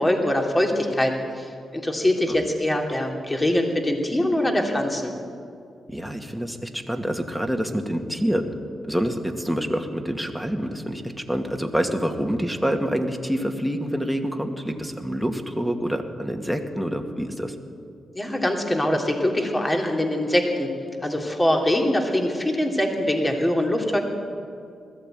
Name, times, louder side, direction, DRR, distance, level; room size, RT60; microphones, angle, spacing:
voice 1, 0.0-5.1 18.1-20.7 21.0-24.0, left 1 dB, 20° left, 2 dB, 3.0 m, -23 dB
voice 2, 5.9-8.5 8.9-11.0 11.3-17.5, equal, ahead, 3 dB, 2.2 m, -26 dB
20.0 x 14.5 x 9.2 m, 2.4 s
cardioid pair, 80°, 0 cm